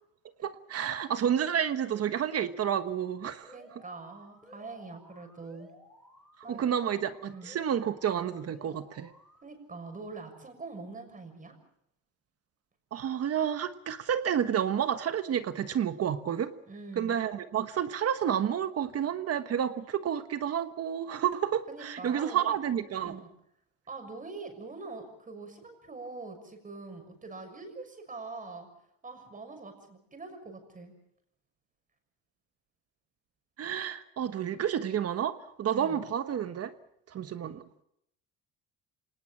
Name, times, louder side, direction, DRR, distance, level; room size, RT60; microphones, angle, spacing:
voice 1, 0.4-3.5 6.5-9.1 12.9-16.5 17.0-23.1 33.6-36.7 37.1-37.6, right 9 dB, 45° right, 10 dB, 1.3 m, -30 dB
Alarm, 3.4-9.4, equal, ahead, 5.4 m, -56 dB
voice 2, 3.5-5.7 6.4-6.7 7.3-7.5 9.4-11.5 16.7-17.2 21.7-22.6 23.0-23.3 23.9-28.7 29.0-30.9 35.7-36.0, right 3 dB, 25° right, 6 dB, 6.5 m, -44 dB
27.0 x 19.0 x 7.4 m, 0.77 s
cardioid pair, 125°, 34 cm